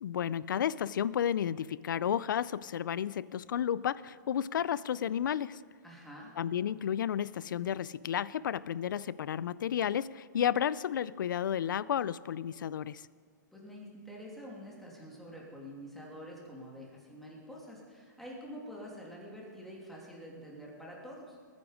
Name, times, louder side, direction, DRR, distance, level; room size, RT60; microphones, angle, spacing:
voice 1, 0.0-5.6 6.4-13.1, left 9 dB, 80° left, 20 dB, 0.5 m, -32 dB
voice 2, 5.8-6.3 13.5-21.4, equal, ahead, -3 dB, 2.7 m, -47 dB
20.5 x 9.7 x 5.1 m, 2.1 s
hypercardioid pair, 155°, 10 cm